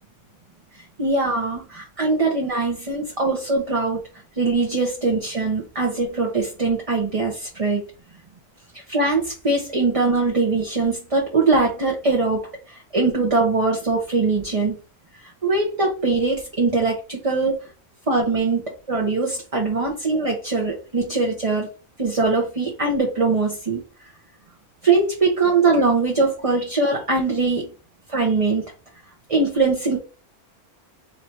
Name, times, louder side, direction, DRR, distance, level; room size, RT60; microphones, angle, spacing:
voice 1, 1.0-4.0 4.4-7.8 8.9-14.7 15.2-17.6 18.1-18.6 18.9-21.7 22.0-23.8 24.8-27.7 28.1-28.6 29.3-30.0, right 3 dB, 30° right, -1 dB, 1.0 m, -21 dB
3.9 x 2.9 x 4.6 m, 0.33 s
omnidirectional pair, 1.3 m